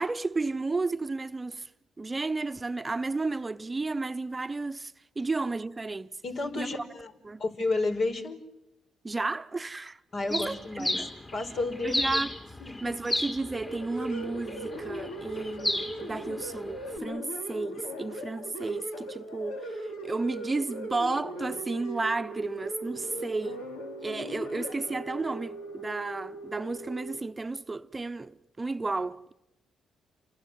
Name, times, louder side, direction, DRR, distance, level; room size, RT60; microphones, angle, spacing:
voice 1, 0.0-1.7 2.0-6.1 6.6-6.9 7.2-7.4 9.0-10.0 10.3-11.1 11.8-12.3 12.8-23.6 24.0-29.3, right 3 dB, 25° right, 0.9 m, -32 dB
voice 2, 6.2-7.1 7.4-8.5 10.1-11.0 11.3-12.2 12.6-13.0, left 3 dB, 55° left, 4.9 m, -31 dB
Bird, 10.3-17.0, left 1 dB, 30° left, 4.1 m, -34 dB
sound 1, 13.4-27.2, right 1 dB, 85° left, 3.0 m, -39 dB
29.0 x 24.0 x 7.6 m
hypercardioid pair, 50°, 0 cm